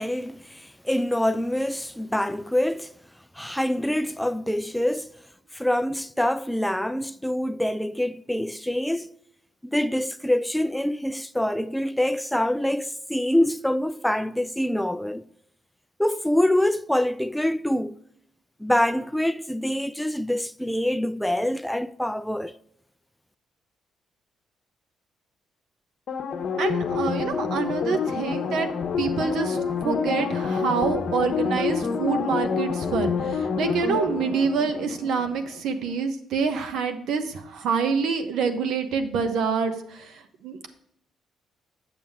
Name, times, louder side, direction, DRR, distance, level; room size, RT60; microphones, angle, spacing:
voice 1, 0.0-2.9 3.4-5.1 5.5-9.1 9.6-15.3 16.0-18.0 18.6-22.6, left 1 dB, 5° left, 0.3 m, -25 dB
sound 1, 26.1-35.5 35.8-35.9, left 5 dB, 60° left, 0.9 m, -27 dB
voice 2, 26.6-28.7 29.0-29.6 29.8-40.7, right 5 dB, 80° right, 0.9 m, -26 dB
7.3 x 6.9 x 3.5 m
cardioid pair, 90°, 0 cm